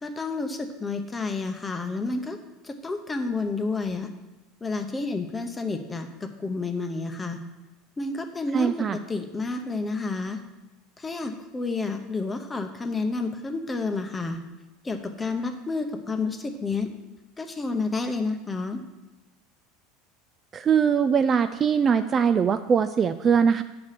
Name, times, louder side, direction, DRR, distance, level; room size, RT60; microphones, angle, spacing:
voice 1, 0.0-2.4 2.6-4.1 4.6-7.4 8.0-10.4 11.0-14.4 14.8-16.9 17.4-18.8, left 3 dB, 15° left, 6 dB, 0.8 m, -30 dB
voice 2, 8.5-9.0 20.5-23.6, right 6 dB, 25° right, 11 dB, 0.3 m, -21 dB
9.5 x 4.9 x 5.8 m, 1.1 s
supercardioid pair, 145°, 0 cm